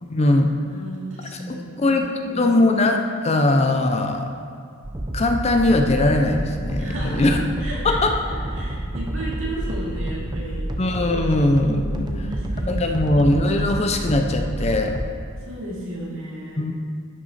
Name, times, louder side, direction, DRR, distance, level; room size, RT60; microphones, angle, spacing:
voice 1, 0.0-0.5 1.5-4.3 5.1-7.4 7.8-8.1 10.8-12.1 12.7-15.0 16.6-16.7, left 2 dB, 30° left, 4 dB, 0.5 m, -20 dB
voice 2, 0.6-2.5 6.8-7.3 7.6-8.0 8.5-10.7 11.5-13.0 15.5-16.6, right 1 dB, 60° right, -6 dB, 2.5 m, -34 dB
sound 1, 4.8-15.1, right 1 dB, 20° right, 0.6 m, -29 dB
11.5 x 6.0 x 4.1 m, 2.2 s
head